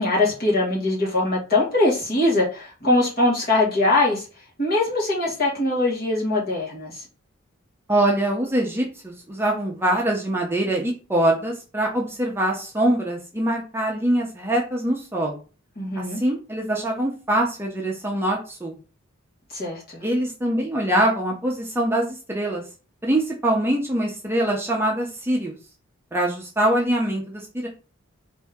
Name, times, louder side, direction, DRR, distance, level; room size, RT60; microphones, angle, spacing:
voice 1, 0.0-4.2 4.6-7.0 15.8-16.2 19.5-19.8, left 2 dB, 45° left, -4 dB, 1.7 m, -22 dB
voice 2, 7.9-15.4 16.0-18.8 20.0-22.6 23.0-25.6 26.1-27.7, right 1 dB, 10° right, -1 dB, 0.7 m, -23 dB
4.2 x 2.7 x 3.5 m, 0.34 s
head